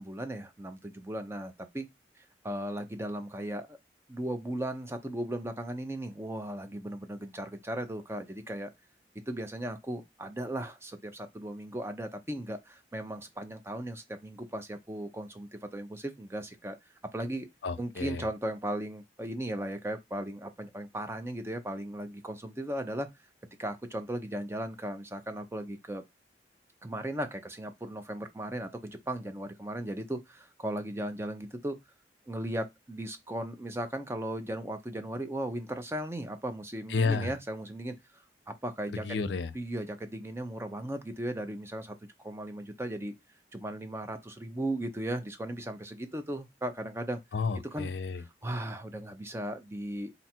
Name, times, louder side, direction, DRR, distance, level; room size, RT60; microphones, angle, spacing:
voice 1, 0.0-1.9 2.2-3.8 4.1-8.7 9.3-16.8 17.1-17.5 17.8-23.1 23.6-26.0 26.8-31.8 32.3-39.2 39.5-41.9 42.2-43.1 43.5-47.2 47.7-47.9 48.4-50.1, right 1 dB, 15° right, 0.5 m, -37 dB
voice 2, 17.6-18.2 36.9-37.3 38.9-39.5 47.3-48.2, left 4 dB, 80° left, 0.5 m, -31 dB
3.9 x 2.4 x 4.3 m
head